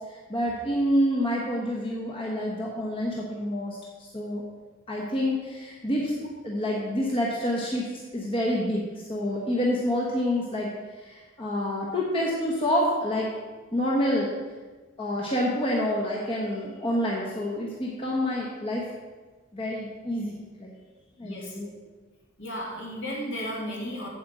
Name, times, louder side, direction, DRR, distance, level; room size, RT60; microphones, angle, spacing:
voice 1, 0.3-4.4 4.9-10.7 11.0-13.3 13.7-14.3 15.0-18.8 19.5-20.7 21.2-21.7, left 1 dB, 25° left, -3 dB, 1.1 m, -28 dB
voice 2, 21.2-21.5 22.4-24.1, equal, 60° left, -3 dB, 2.6 m, -34 dB
8.0 x 7.8 x 4.9 m, 1.3 s
head